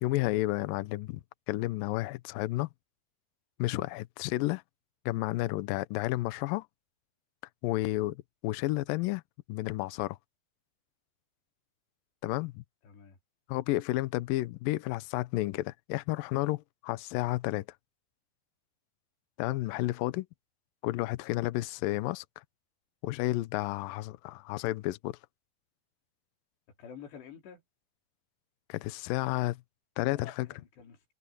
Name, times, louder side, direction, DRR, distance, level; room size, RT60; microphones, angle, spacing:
voice 1, 0.0-1.2 1.5-2.7 3.6-4.6 5.1-6.7 7.6-9.2 9.5-10.2 12.2-12.6 13.5-17.7 19.4-20.3 20.8-22.3 23.0-25.2 28.7-29.6 30.0-30.5, left 18 dB, 90° left, 1.9 m, -31 dB
voice 2, 12.8-13.2 26.8-27.6 30.1-31.0, left 7 dB, 75° left, 5.5 m, -49 dB
omnidirectional pair, 5.1 m